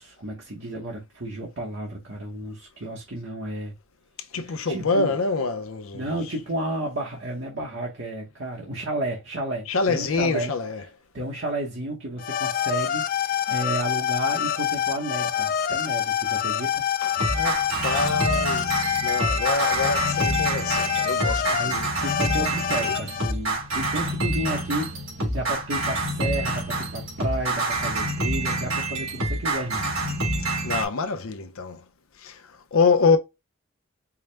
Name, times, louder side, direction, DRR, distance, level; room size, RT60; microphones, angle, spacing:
voice 1, 0.0-3.7 4.3-5.2 5.9-10.5 11.1-16.8 21.5-29.9, right 1 dB, 60° right, 1.0 m, -32 dB
voice 2, 4.3-6.2 9.7-10.9 17.0-21.9 22.7-23.0 30.6-31.8 32.2-32.4 32.7-33.2, left 4 dB, 85° left, 0.7 m, -26 dB
sound 1, 12.2-23.3, left 9 dB, 40° left, 0.3 m, -26 dB
sound 2, 17.2-30.9, right 2 dB, 85° right, 1.9 m, -27 dB
4.7 x 2.2 x 3.3 m
head